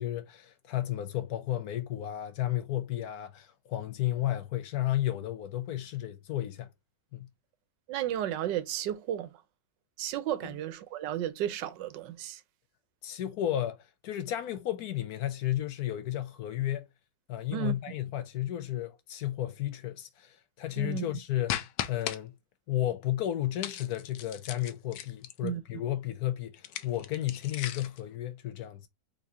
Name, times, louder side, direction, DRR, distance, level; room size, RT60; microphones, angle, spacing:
voice 1, 0.0-6.7 7.1-7.3 10.4-10.5 13.0-16.9 17.3-21.6 21.9-22.4 22.7-28.9, left 13 dB, 70° left, 1.0 m, -33 dB
voice 2, 7.9-9.4 10.0-12.4 17.5-17.8 20.8-21.0 25.4-25.6, right 11 dB, 90° right, 1.3 m, -33 dB
sound 1, 21.5-22.2 23.6-25.5 26.5-28.0, left 11 dB, 90° left, 1.3 m, -37 dB
4.1 x 3.6 x 2.7 m
omnidirectional pair, 1.9 m